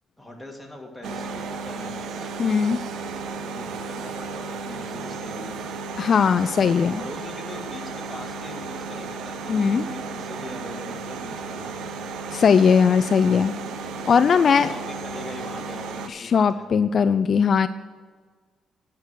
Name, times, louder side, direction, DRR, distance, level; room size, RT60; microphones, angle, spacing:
voice 1, 0.2-2.6 3.4-5.9 7.0-12.0 14.4-16.6, left 1 dB, ahead, -1 dB, 2.6 m, -41 dB
sound 1, 1.0-16.1, right 4 dB, 80° right, 0.8 m, -34 dB
voice 2, 2.4-2.8 6.0-7.0 9.5-9.8 12.3-13.5 14.1-14.7 16.2-17.7, left 6 dB, 50° left, 12 dB, 0.4 m, -19 dB
10.5 x 6.5 x 7.6 m, 1.5 s
cardioid pair, 90°, 0 cm